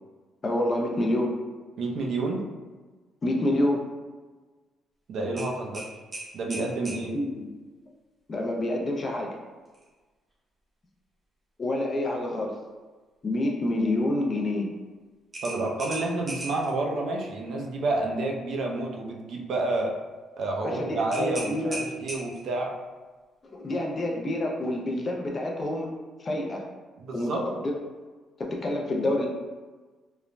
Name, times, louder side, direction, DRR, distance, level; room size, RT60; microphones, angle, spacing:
voice 1, 0.4-1.4 3.2-3.8 7.1-7.5 8.3-9.4 11.6-12.6 13.2-14.7 20.6-21.8 23.4-25.9 26.2-26.7 27.1-27.7 28.4-29.3, left 1 dB, 25° left, 0 dB, 0.3 m, -27 dB
voice 2, 1.8-2.4 5.1-5.9 6.3-7.1 15.4-19.9 20.4-22.7 27.0-27.4, right 2 dB, 55° right, 0 dB, 0.4 m, -29 dB
sound 1, 5.4-7.0 9.6-9.9 10.3-10.4 15.3-16.7 21.1-22.5, right 2 dB, 20° right, 0.6 m, -37 dB
3.0 x 2.1 x 2.4 m, 1.3 s
cardioid pair, 165°, 0 cm